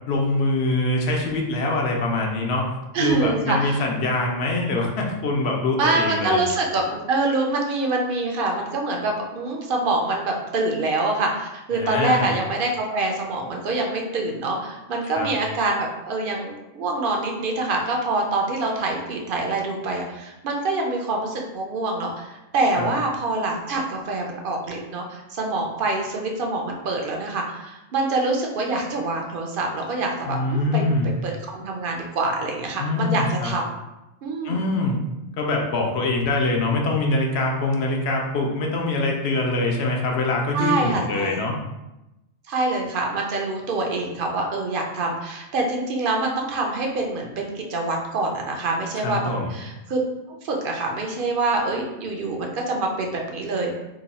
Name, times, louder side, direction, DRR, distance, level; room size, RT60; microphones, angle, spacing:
voice 1, 0.1-2.7 3.0-6.4 11.7-12.3 15.0-15.3 22.7-22.9 30.2-31.1 32.8-33.5 34.4-35.0 35.4-41.6 49.0-49.5, left 2 dB, 60° left, 0 dB, 0.8 m, -24 dB
voice 2, 2.9-3.8 5.8-30.8 31.2-33.6 34.2-34.6 40.5-41.4 42.5-50.0 50.4-53.7, right 2 dB, 60° right, 1 dB, 0.6 m, -25 dB
2.9 x 2.3 x 4.0 m, 0.97 s
omnidirectional pair, 1.3 m